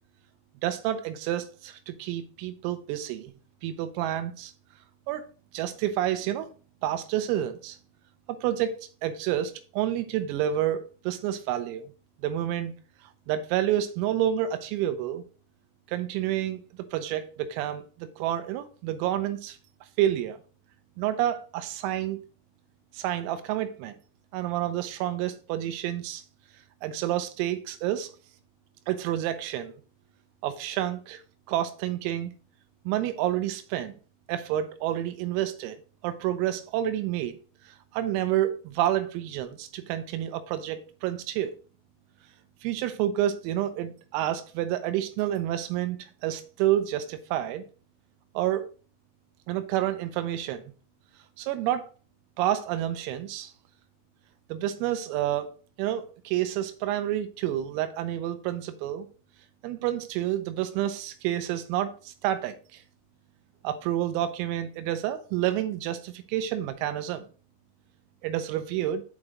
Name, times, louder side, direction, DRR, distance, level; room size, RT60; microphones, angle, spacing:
voice 1, 0.6-3.3 3.6-4.5 5.1-5.2 5.5-6.5 6.8-7.8 8.3-11.9 12.2-12.7 13.3-15.2 15.9-16.6 16.9-19.6 20.0-20.4 21.0-22.2 22.9-24.0 24.3-26.2 26.8-28.1 28.9-29.7 30.4-31.2 31.5-32.3 32.9-34.0 34.3-35.8 36.0-37.4 37.9-41.6 42.6-47.7 48.4-48.7 49.5-50.6 51.4-51.9 52.4-53.5 54.5-55.5 55.8-59.1 59.6-62.8 63.6-67.3 68.2-69.0, right 12 dB, 85° right, 3.4 m, -29 dB
8.1 x 4.9 x 2.8 m
omnidirectional pair, 6.0 m